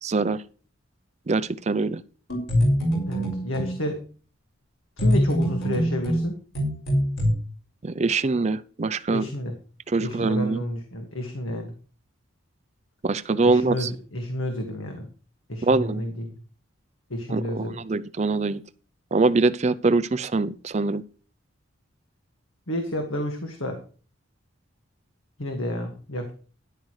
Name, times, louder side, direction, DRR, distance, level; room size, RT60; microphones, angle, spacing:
voice 1, 0.0-0.4 1.3-2.0 7.8-9.2 9.9-10.6 13.0-13.9 15.6-16.0 17.3-18.6 19.1-21.0, right 3 dB, 30° right, 13 dB, 0.4 m, -23 dB
sound 1, 2.3-3.8 5.0-7.3, equal, 55° left, 6.1 m, -23 dB
voice 2, 3.1-4.0 5.0-6.4 9.1-9.5 10.0-11.7 13.4-15.1 15.5-16.2 17.1-17.8 22.7-23.8 25.4-26.3, left 1 dB, 75° left, 4 dB, 1.8 m, -30 dB
13.0 x 11.0 x 3.2 m, 0.40 s
head